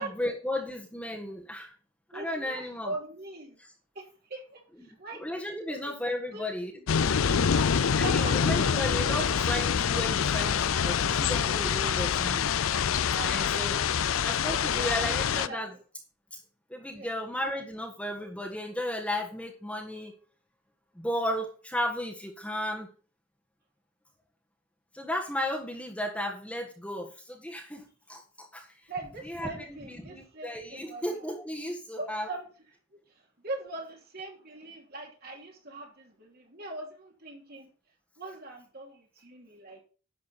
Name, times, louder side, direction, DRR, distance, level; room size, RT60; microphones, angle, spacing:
voice 1, 0.0-1.7 2.1-2.9 4.8-6.7 8.0-12.6 13.2-15.7 16.3-16.4 16.7-20.1 20.9-22.9 24.9-28.7 29.2-32.3, left 1 dB, 5° left, 0 dB, 1.5 m, -34 dB
voice 2, 2.1-3.6 3.9-5.2 5.7-6.0 6.3-6.8 7.3-7.7 8.0-8.7 12.7-13.3 13.6-14.2 14.5-15.6 16.9-17.2 28.9-31.0 32.0-32.4 33.4-37.7 38.2-39.8, right 2 dB, 50° right, 1 dB, 2.9 m, -41 dB
sound 1, 6.9-15.5, left 7 dB, 85° left, 0.5 m, -26 dB
11.0 x 7.4 x 4.2 m, 0.36 s
head